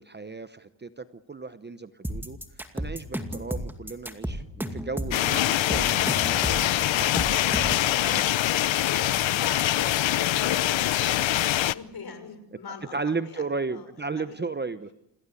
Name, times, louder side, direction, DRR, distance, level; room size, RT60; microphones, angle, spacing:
voice 1, 0.0-2.4 2.7-6.5 6.9-7.2 8.1-8.3 12.9-14.9, right 4 dB, 20° right, 12 dB, 0.9 m, -34 dB
sound 1, 2.0-7.9, equal, 5° right, 2.4 m, -32 dB
sound 2, 5.1-11.7, left 13 dB, 70° left, 0.8 m, -24 dB
voice 2, 8.6-12.9 13.3-13.5 13.7-13.9 14.2-14.4, left 5 dB, 50° left, 9 dB, 6.0 m, -42 dB
28.0 x 18.5 x 8.5 m, 0.85 s
cardioid pair, 110°, 48 cm